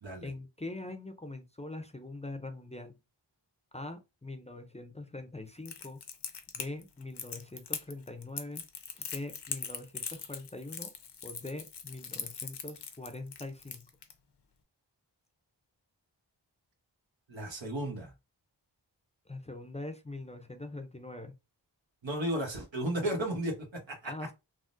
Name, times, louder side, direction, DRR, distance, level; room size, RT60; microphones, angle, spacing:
voice 1, 0.2-3.0 3.7-6.0 6.5-8.6 9.0-10.9 11.2-13.9 19.3-21.4 24.0-24.3, left 2 dB, 15° left, 0.4 m, -43 dB
Crackle, 5.6-14.1, left 6 dB, 65° left, 0.6 m, -40 dB
voice 2, 17.3-18.1 22.0-24.1, right 1 dB, 85° right, 1.1 m, -34 dB
3.6 x 2.0 x 2.5 m
wide cardioid pair, 45°, 44 cm